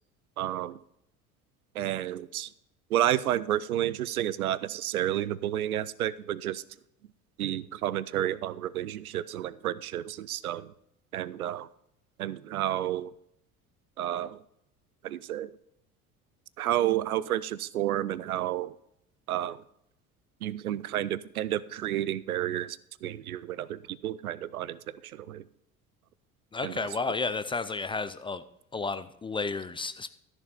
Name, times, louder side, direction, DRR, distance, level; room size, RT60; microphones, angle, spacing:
voice 1, 0.4-0.8 1.7-2.5 2.9-6.6 7.4-10.7 11.1-11.7 12.2-13.1 14.0-14.4 15.0-15.5 16.6-18.7 19.3-19.6 20.4-25.4 26.6-26.9, right 12 dB, 80° right, 0.5 m, -31 dB
voice 2, 26.5-28.4 28.7-30.1, left 4 dB, 15° left, 0.4 m, -32 dB
13.5 x 6.2 x 4.2 m
figure-of-eight pair, 60°, 43 cm